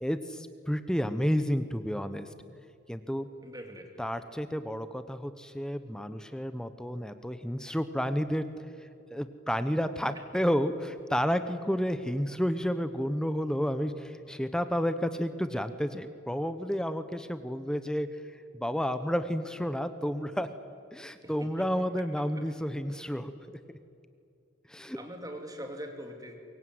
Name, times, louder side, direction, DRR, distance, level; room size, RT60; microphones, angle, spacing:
voice 1, 0.0-2.3 2.9-3.3 4.0-8.5 8.8-18.2 18.5-20.5 20.9-23.3 23.7-23.8 24.7-25.0, equal, 5° left, 11 dB, 0.9 m, -31 dB
voice 2, 3.4-4.0 21.2-21.7 22.3-22.4 25.0-26.4, equal, 20° right, 4 dB, 2.7 m, -42 dB
24.0 x 22.0 x 9.5 m, 2.5 s
head